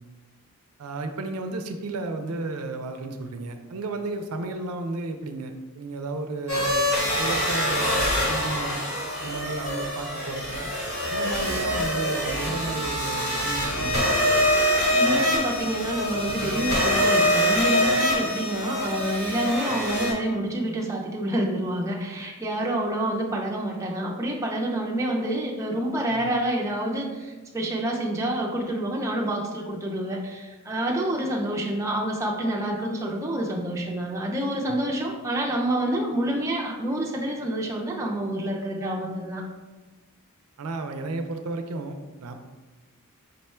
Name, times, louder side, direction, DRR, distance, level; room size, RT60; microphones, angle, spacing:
voice 1, 0.8-6.9 7.2-8.8 9.2-10.7 11.1-14.0 26.1-26.3 34.7-34.8 40.6-42.3, right 2 dB, 85° right, 6 dB, 0.5 m, -33 dB
sound 1, 6.5-20.1, equal, 70° left, 1.3 m, -24 dB
voice 2, 14.9-39.4, right 1 dB, 15° right, -2 dB, 0.5 m, -28 dB
5.3 x 2.2 x 4.2 m, 1.2 s
head